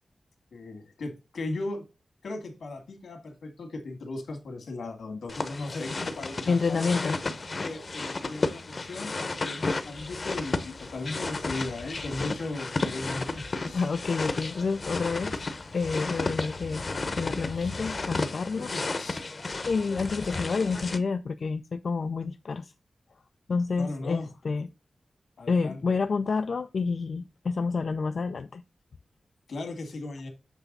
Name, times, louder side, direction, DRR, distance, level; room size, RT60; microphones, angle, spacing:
voice 1, 0.5-1.8 2.2-7.2 7.6-13.9 17.5-17.7 18.4-19.3 23.8-24.3 25.4-26.0 29.5-30.3, left 2 dB, 85° left, 2.0 m, -37 dB
sound 1, 5.3-21.0, left 3 dB, 40° left, 0.9 m, -33 dB
voice 2, 6.5-7.2 13.7-15.4 15.7-16.9 17.2-18.7 19.7-22.7 23.5-24.7 25.5-28.6, left 4 dB, 60° left, 0.4 m, -28 dB
8.1 x 3.4 x 5.3 m
wide cardioid pair, 130°, 0 cm